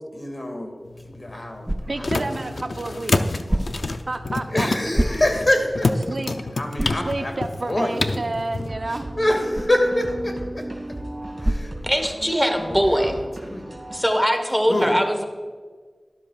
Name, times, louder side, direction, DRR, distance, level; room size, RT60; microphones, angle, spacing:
voice 1, 0.1-2.7 4.5-6.0 6.6-7.3 7.6-8.2 8.9-10.7 11.4-11.7 12.2-13.8 14.7-14.9, left 1 dB, 50° left, 3 dB, 2.0 m, -26 dB
sound 1, 0.8-8.7, left 2 dB, 80° left, 0.5 m, -28 dB
sound 2, 0.8-12.5, right 1 dB, 20° right, 0.5 m, -33 dB
voice 2, 1.9-3.4 4.1-4.7 6.1-6.3 7.0-9.1, right 2 dB, 65° right, 7 dB, 0.6 m, -30 dB
sound 3, 8.7-14.0, right 1 dB, 45° right, 2.2 m, -35 dB
voice 3, 11.8-13.2 13.9-15.2, equal, ahead, 5 dB, 1.2 m, -21 dB
12.5 x 12.5 x 2.4 m, 1.5 s
wide cardioid pair, 45°, 0 cm